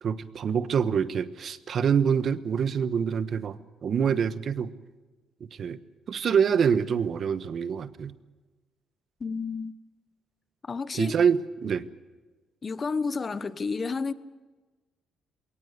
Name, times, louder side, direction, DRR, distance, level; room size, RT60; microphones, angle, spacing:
voice 1, 0.0-4.7 5.6-5.8 6.1-8.1 10.9-11.9, right 7 dB, 55° right, 1.2 m, -26 dB
voice 2, 9.2-9.7 10.6-11.1 12.6-14.1, left 4 dB, 35° left, 1.1 m, -30 dB
21.5 x 18.5 x 8.3 m
cardioid pair, 90°, 0 cm